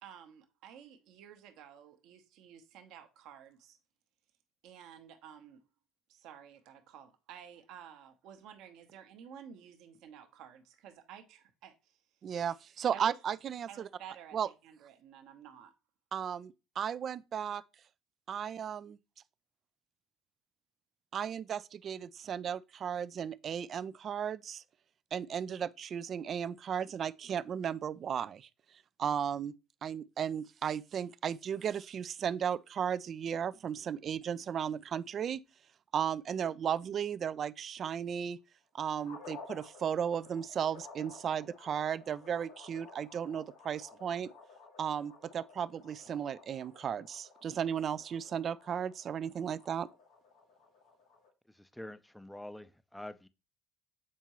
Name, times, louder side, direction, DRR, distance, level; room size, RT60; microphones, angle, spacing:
voice 1, 0.0-3.8 4.6-5.6 6.1-11.7 12.9-13.2 13.7-15.7, right 9 dB, 65° right, 0.9 m, -52 dB
voice 2, 12.2-13.9 14.3-14.5 16.1-17.6 18.3-19.0 21.1-24.6 25.1-28.5 29.0-29.5 29.8-35.4 35.9-38.4 38.7-44.3 44.8-49.9, right 8 dB, 45° right, 0.3 m, -35 dB
sound 1, 39.0-51.3, left 4 dB, 85° left, 1.9 m, -54 dB
voice 3, 51.5-53.3, left 1 dB, 5° left, 0.5 m, -46 dB
7.3 x 4.4 x 3.0 m
hypercardioid pair, 60°, 0 cm